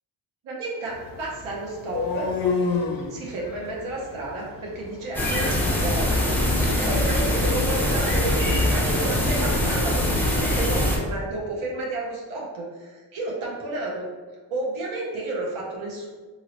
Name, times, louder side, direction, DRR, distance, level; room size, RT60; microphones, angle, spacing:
voice 1, 0.4-0.9 1.2-2.3 3.1-8.4 8.7-14.1 14.5-16.1, right 2 dB, 90° right, -4 dB, 0.7 m, -32 dB
sound 1, 0.9-8.8, left 4 dB, 50° left, 0.5 m, -32 dB
sound 2, 5.1-11.0, left 1 dB, 5° left, 0.7 m, -22 dB
2.8 x 2.8 x 2.8 m, 1.3 s
cardioid pair, 65°, 47 cm